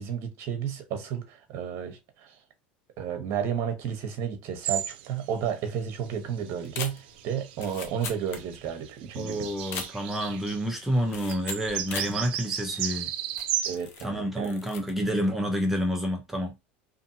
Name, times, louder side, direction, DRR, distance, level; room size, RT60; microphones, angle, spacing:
voice 1, 0.0-2.3 3.0-9.5 13.6-14.5, right 8 dB, 55° right, 0.8 m, -32 dB
sound 1, 4.6-5.1 5.5-5.6 6.3-10.7 11.0-11.1 11.3-13.8, right 10 dB, 80° right, 0.4 m, -34 dB
sound 2, 6.6-8.8 9.1-9.2 9.6-10.3 11.1-12.2 12.7-12.8 13.3-14.1 14.4-14.9 15.2-15.5, left 6 dB, 50° left, 0.7 m, -39 dB
voice 2, 9.2-13.1 14.0-16.5, equal, 5° right, 0.7 m, -29 dB
2.6 x 2.6 x 2.6 m
supercardioid pair, 100°, 5 cm